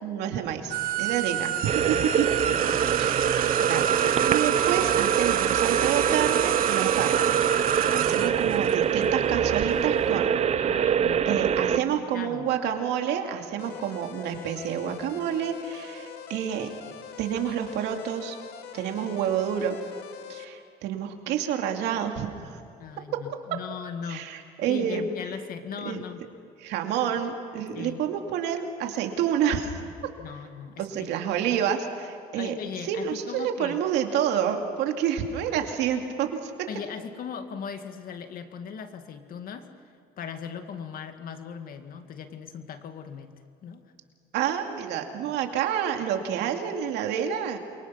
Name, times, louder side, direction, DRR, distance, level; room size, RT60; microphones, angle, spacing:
voice 1, 0.0-2.3 2.9-3.3 3.6-7.4 7.9-10.3 11.3-16.7 17.2-18.4 18.7-19.8 20.3-22.6 24.1-25.0 25.8-26.0 26.6-29.7 30.8-32.5 32.8-36.5 44.3-47.6, right 9 dB, 90° right, 4 dB, 2.5 m, -28 dB
sound 1, 0.7-9.7, right 10 dB, 60° right, 1.3 m, -28 dB
sound 2, 1.6-11.8, right 8 dB, 40° right, 0.6 m, -24 dB
voice 2, 2.5-3.0 8.2-8.4 10.6-12.5 22.8-24.3 24.7-26.3 27.7-28.0 30.2-31.1 32.4-33.8 36.7-43.3 43.6-43.9, left 7 dB, 60° left, 7 dB, 2.1 m, -39 dB
sound 3, 13.6-20.5, left 8 dB, 80° left, 1.9 m, -43 dB
28.5 x 23.5 x 5.8 m, 2.4 s
cardioid pair, 110°, 17 cm